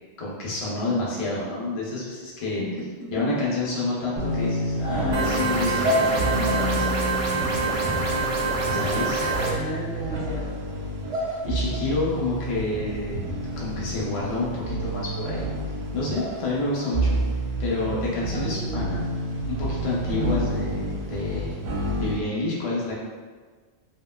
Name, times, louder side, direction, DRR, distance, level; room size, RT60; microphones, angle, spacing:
voice 1, 0.2-2.6 3.1-6.9 8.8-9.2 11.4-13.2 13.6-15.5 15.9-17.2 17.6-18.8 19.5-21.6 22.0-22.9, left 2 dB, 35° left, -6 dB, 0.6 m, -28 dB
voice 2, 2.5-3.3 8.7-10.6 18.1-19.1, left 1 dB, 80° left, -3 dB, 0.9 m, -35 dB
sound 1, 4.2-22.1, right 1 dB, 75° right, 0.8 m, -29 dB
sound 2, 5.1-9.5, right 4 dB, 60° right, 0.3 m, -26 dB
2.9 x 2.8 x 2.2 m, 1.5 s
omnidirectional pair, 1.1 m